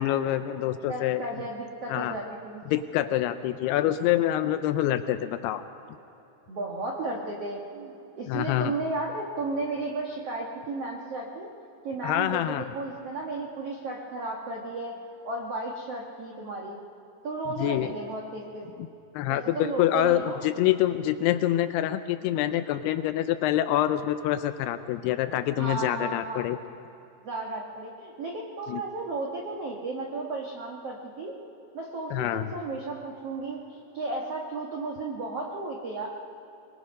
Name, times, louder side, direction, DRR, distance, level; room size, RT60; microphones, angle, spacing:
voice 1, 0.0-1.2 1.9-2.1 2.7-5.6 8.3-8.7 12.0-12.7 17.6-18.0 19.2-26.6 28.7-28.8 32.1-32.5, left 13 dB, 85° left, 10 dB, 2.3 m, -26 dB
voice 2, 0.9-2.6 6.5-11.5 11.8-14.9 15.2-16.8 17.2-18.7 19.3-20.4 25.6-26.5 27.2-31.3 31.7-36.1, right 2 dB, 85° right, -1 dB, 1.3 m, -34 dB
24.0 x 20.5 x 5.3 m, 3.0 s
omnidirectional pair, 5.3 m